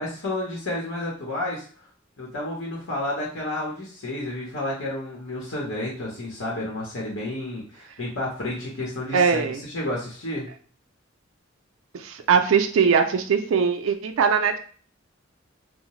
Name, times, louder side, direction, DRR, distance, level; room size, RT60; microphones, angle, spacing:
voice 1, 0.0-1.7 2.2-10.5, left 1 dB, 90° left, -4 dB, 0.8 m, -31 dB
voice 2, 9.1-9.6 11.9-14.6, right 6 dB, 90° right, 6 dB, 0.4 m, -21 dB
2.7 x 2.0 x 3.0 m, 0.44 s
head